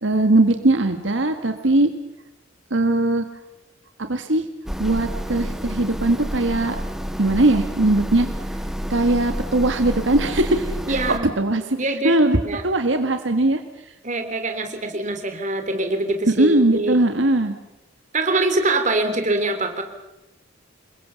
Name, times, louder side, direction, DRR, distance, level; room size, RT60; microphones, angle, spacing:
voice 1, 0.0-1.9 2.7-3.2 4.0-4.4 4.8-6.8 7.2-8.3 8.9-11.0 11.4-11.8 12.0-12.4 12.6-13.6 16.4-17.5, right 2 dB, 75° right, 7 dB, 1.6 m, -19 dB
sound 1, 4.7-11.2, equal, ahead, 1.3 m, -29 dB
voice 2, 10.9-11.3 11.8-12.1 12.4-12.6 14.0-17.0 18.1-19.8, right 2 dB, 40° right, 6 dB, 3.4 m, -23 dB
28.0 x 22.0 x 7.1 m, 0.95 s
head